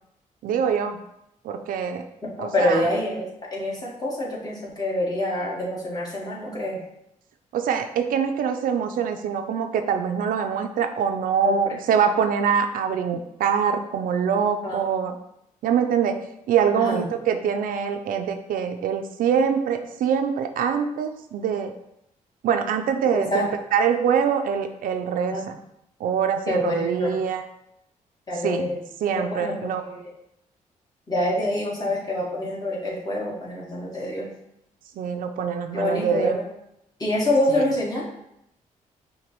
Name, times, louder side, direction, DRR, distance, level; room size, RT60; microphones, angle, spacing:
voice 1, 0.4-1.0 1.4-2.0 2.4-2.9 7.5-15.2 15.6-16.2 16.5-21.7 22.4-25.6 26.0-27.4 28.4-28.7 29.0-29.8 35.0-36.4 37.5-37.7, right 7 dB, 80° right, 7 dB, 0.4 m, -24 dB
voice 2, 2.2-6.8 11.4-11.8 14.6-14.8 16.7-17.0 23.1-23.5 25.3-25.4 26.5-27.2 28.3-28.8 29.1-29.6 29.8-30.1 31.1-34.3 35.7-36.4 37.0-38.0, left 1 dB, 25° left, -4 dB, 1.5 m, -26 dB
5.9 x 2.2 x 3.0 m, 0.80 s
cardioid pair, 65°, 14 cm